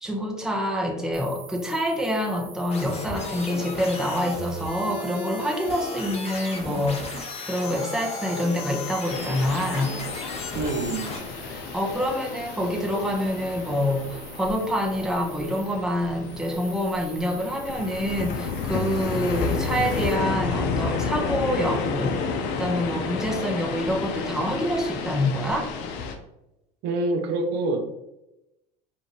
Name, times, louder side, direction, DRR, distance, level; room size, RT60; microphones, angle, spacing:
voice 1, 0.0-10.0 11.5-25.7, equal, 5° right, 0 dB, 0.9 m, -27 dB
sound 1, 1.1-20.1, right 5 dB, 35° right, 1.2 m, -46 dB
sound 2, 2.7-11.2, left 2 dB, 30° left, 1.1 m, -35 dB
sound 3, 9.1-26.1, left 5 dB, 60° left, 0.7 m, -31 dB
voice 2, 10.5-11.1 26.8-27.8, right 2 dB, 60° right, 5 dB, 0.7 m, -26 dB
4.9 x 2.8 x 2.9 m, 0.89 s
hypercardioid pair, 85°, 20 cm